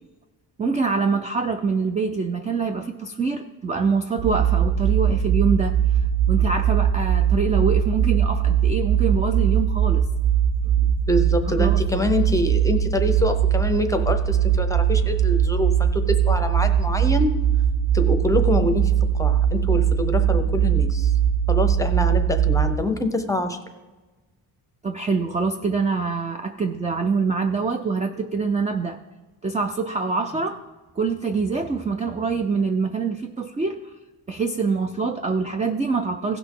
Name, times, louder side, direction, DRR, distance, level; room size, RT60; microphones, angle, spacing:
voice 1, 0.6-5.8 6.3-10.1 11.5-11.8 24.8-29.0 29.4-30.6 31.0-33.9 34.3-36.4, right 4 dB, 20° right, 7 dB, 0.3 m, -25 dB
sound 1, 4.2-22.7, right 9 dB, 70° right, 1.1 m, -20 dB
voice 2, 11.1-17.3 17.9-21.1 21.5-23.6, left 1 dB, 10° left, 7 dB, 0.7 m, -25 dB
16.5 x 5.9 x 3.7 m, 1.2 s
wide cardioid pair, 150°, 40 cm